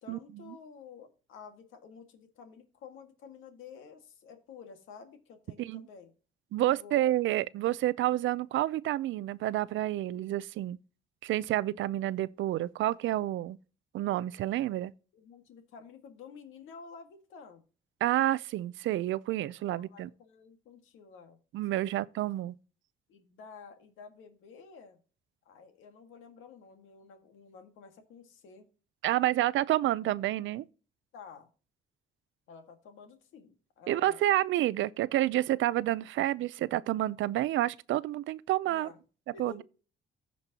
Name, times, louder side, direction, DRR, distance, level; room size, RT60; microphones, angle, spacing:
voice 1, 0.0-6.1 6.6-7.0 15.1-17.6 19.7-21.4 23.1-25.0 25.5-28.7 31.1-31.5 32.5-34.3 38.7-39.0 39.3-39.6, left 6 dB, 85° left, 1.8 m, -51 dB
voice 2, 6.5-10.8 11.2-13.6 13.9-14.9 18.0-20.1 21.5-22.5 29.0-30.7 33.9-38.9 39.4-39.6, right 14 dB, 75° right, 0.5 m, -29 dB
15.5 x 5.3 x 2.8 m
cardioid pair, 90°, 20 cm